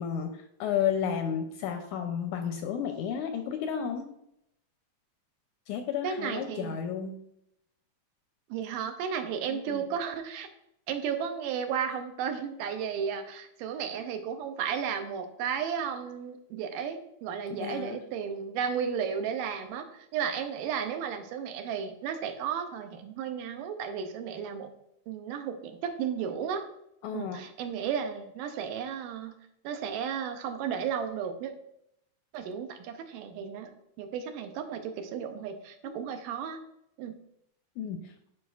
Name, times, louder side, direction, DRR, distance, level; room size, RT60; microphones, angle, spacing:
voice 1, 0.0-4.1 5.7-7.2 9.5-9.9 17.6-18.0 27.0-27.4 35.8-35.9 37.8-38.1, left 8 dB, 80° left, 5 dB, 1.8 m, -32 dB
voice 2, 6.0-6.8 8.5-10.5 10.9-24.7 25.1-26.7 27.1-29.3 29.6-31.5 32.3-33.7 34.0-36.6 37.0-37.1, right 7 dB, 85° right, 7 dB, 2.3 m, -34 dB
11.5 x 4.9 x 2.4 m, 0.77 s
omnidirectional pair, 3.8 m